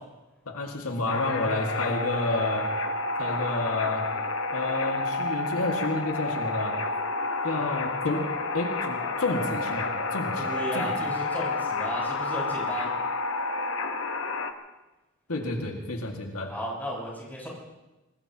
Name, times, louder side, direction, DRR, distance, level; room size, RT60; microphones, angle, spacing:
voice 1, 0.5-2.7 3.2-4.0 4.5-6.8 7.4-8.3 8.5-10.5 10.7-10.9 15.3-16.5, left 2 dB, 80° left, 1 dB, 2.0 m, -30 dB
sound 1, 1.1-14.5, left 3 dB, 60° left, 1.2 m, -30 dB
voice 2, 10.4-12.9 16.5-17.5, equal, 10° left, -5 dB, 5.8 m, -34 dB
24.5 x 20.0 x 3.0 m, 1.0 s
head